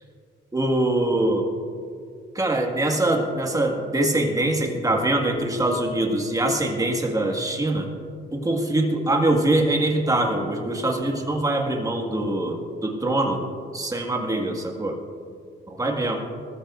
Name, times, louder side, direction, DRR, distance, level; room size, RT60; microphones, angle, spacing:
voice 1, 0.5-1.5 2.4-7.9 8.3-13.4 13.7-15.0 15.7-16.2, right 1 dB, 15° right, 1 dB, 1.9 m, -23 dB
20.0 x 14.0 x 2.6 m, 2.3 s
cardioid pair, 90°, 20 cm